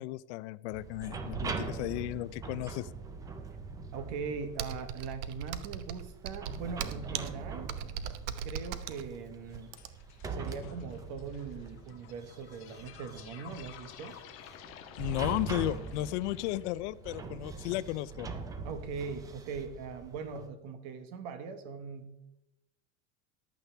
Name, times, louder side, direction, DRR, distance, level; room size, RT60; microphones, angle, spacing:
voice 1, 0.0-2.9 15.0-18.3, left 16 dB, 65° left, 18 dB, 0.5 m, -34 dB
sound 1, 0.7-20.5, right 4 dB, 10° right, 0.4 m, -42 dB
voice 2, 3.9-7.7 8.4-9.7 10.3-14.2 18.6-22.3, right 5 dB, 45° right, 10 dB, 1.3 m, -41 dB
Computer keyboard, 4.6-10.2, right 9 dB, 70° right, 0.9 m, -39 dB
sound 2, 9.5-16.7, left 10 dB, 35° left, 1.3 m, -53 dB
15.0 x 10.5 x 3.4 m, 0.89 s
supercardioid pair, 170°, 37 cm